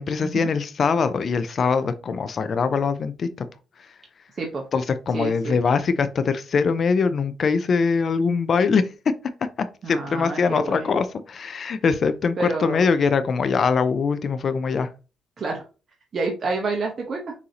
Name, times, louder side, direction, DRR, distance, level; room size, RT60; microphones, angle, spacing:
voice 1, 0.0-3.5 4.7-8.8 9.9-14.9, left 5 dB, 50° left, 0.4 m, -22 dB
voice 2, 5.1-5.6 9.8-10.9 12.4-12.8 15.4-15.6 16.1-17.3, right 3 dB, 45° right, 0.9 m, -28 dB
6.3 x 2.7 x 2.8 m
cardioid pair, 90°, 0 cm